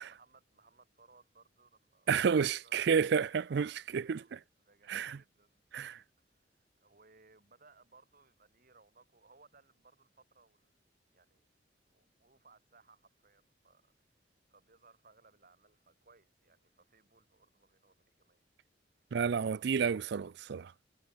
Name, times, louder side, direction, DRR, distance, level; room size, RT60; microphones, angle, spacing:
voice 1, 0.0-2.8 3.2-10.7 11.1-11.5 11.9-18.4 19.0-19.1, right 4 dB, 50° right, 3.5 m, -65 dB
voice 2, 2.1-4.2 4.9-5.2 5.7-6.0 19.1-20.7, right 6 dB, 65° right, 0.4 m, -30 dB
head